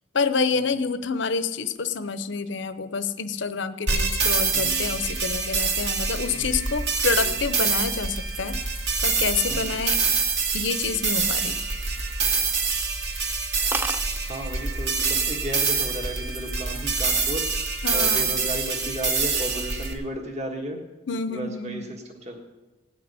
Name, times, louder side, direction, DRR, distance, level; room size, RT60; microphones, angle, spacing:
voice 1, 0.1-8.6 9.0-10.0 10.5-11.6 17.8-18.3 21.1-21.9, left 5 dB, 60° left, 11 dB, 0.7 m, -28 dB
sound 1, 3.9-19.9, right 4 dB, 60° right, 2.1 m, -25 dB
voice 2, 4.5-5.0 6.3-6.7 7.1-7.4 9.5-9.8 14.3-20.8 21.3-22.4, equal, 35° right, 1 dB, 1.6 m, -34 dB
sound 2, 11.4-12.2 12.6-12.8 13.2-13.3 13.5-13.6 13.7-14.1 15.0-15.3 15.7-16.1, right 2 dB, 10° right, 0.5 m, -32 dB
17.0 x 6.1 x 9.7 m, 1.1 s
head